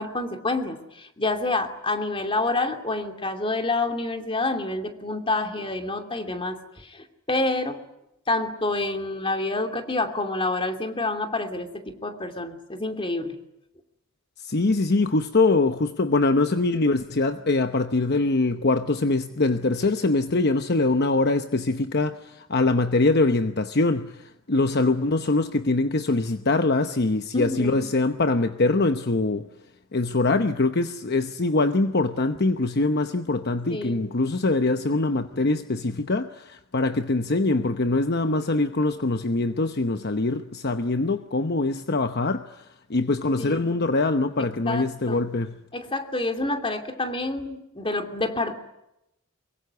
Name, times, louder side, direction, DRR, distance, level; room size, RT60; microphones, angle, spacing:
voice 1, 0.0-7.8 8.3-13.4 27.3-27.9 33.7-34.1 43.4-43.8 44.6-45.2 45.7-48.5, left 2 dB, 25° left, 2.7 m, -28 dB
voice 2, 14.4-29.5 29.9-42.6 42.9-45.6, left 2 dB, 50° left, 0.9 m, -23 dB
23.5 x 23.0 x 9.5 m
head